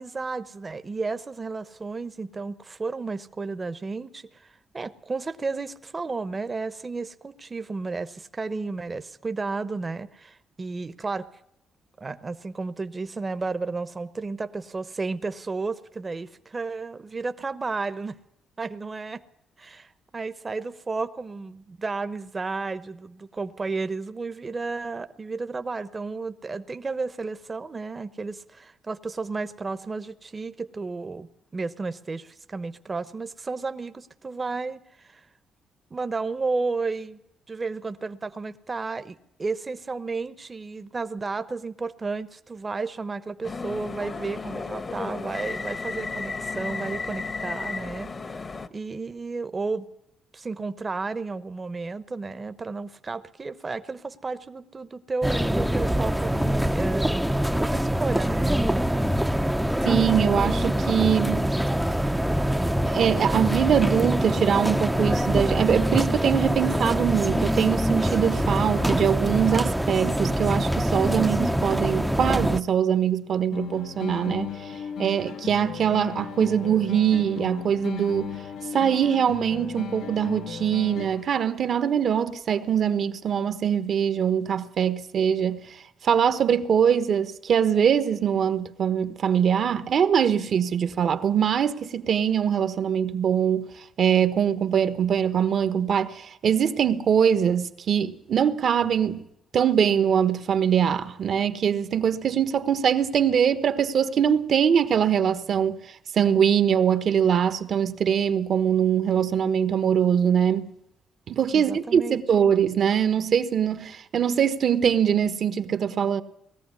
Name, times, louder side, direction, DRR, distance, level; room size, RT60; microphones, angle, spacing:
voice 1, 0.0-4.5 4.7-11.3 12.0-18.2 18.6-19.2 19.6-35.2 35.9-37.2 37.5-48.4 48.7-49.9 50.3-58.8 59.2-59.3 111.5-112.2, right 3 dB, 30° right, 1.0 m, -32 dB
sound 1, 43.4-48.7, left 4 dB, 35° left, 1.1 m, -33 dB
sound 2, 55.2-72.6, equal, 5° right, 0.7 m, -24 dB
voice 2, 59.8-61.5 62.8-74.7 75.0-78.3 78.7-85.8 86.0-93.7 94.0-99.2 99.5-105.8 106.1-110.7 111.3-116.2, right 8 dB, 60° right, 1.2 m, -23 dB
sound 3, 73.5-81.5, left 8 dB, 75° left, 1.2 m, -36 dB
19.5 x 14.5 x 9.7 m
cardioid pair, 90°, 0 cm